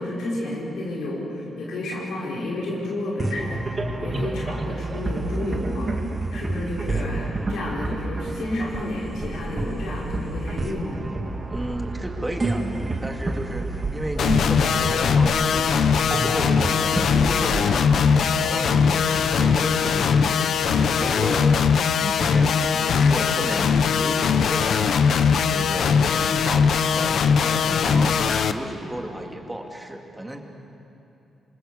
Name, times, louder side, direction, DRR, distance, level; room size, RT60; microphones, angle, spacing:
voice 1, 0.0-11.1, left 1 dB, 90° left, -5 dB, 5.6 m, -31 dB
sound 1, 3.2-18.8, right 2 dB, 25° right, 2.1 m, -29 dB
voice 2, 11.5-15.7 16.2-20.6 20.9-25.0 25.5-30.4, right 1 dB, 10° right, 2 dB, 2.5 m, -34 dB
sound 2, 14.2-28.5, left 6 dB, 65° left, 1.0 m, -20 dB
27.5 x 26.0 x 7.3 m, 2.8 s
cardioid pair, 130°, 0 cm